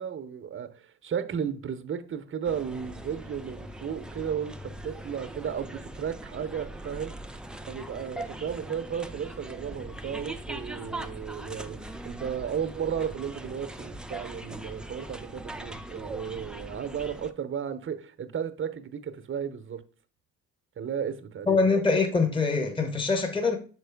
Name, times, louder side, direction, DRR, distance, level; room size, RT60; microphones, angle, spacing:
voice 1, 0.0-7.2 7.7-19.8 20.8-21.6, right 8 dB, 35° right, 0.7 m, -34 dB
sound 1, 2.4-17.3, right 1 dB, ahead, 0.4 m, -41 dB
voice 2, 21.5-23.6, left 4 dB, 15° left, 0.9 m, -24 dB
6.2 x 4.6 x 3.4 m
hypercardioid pair, 65°, 38 cm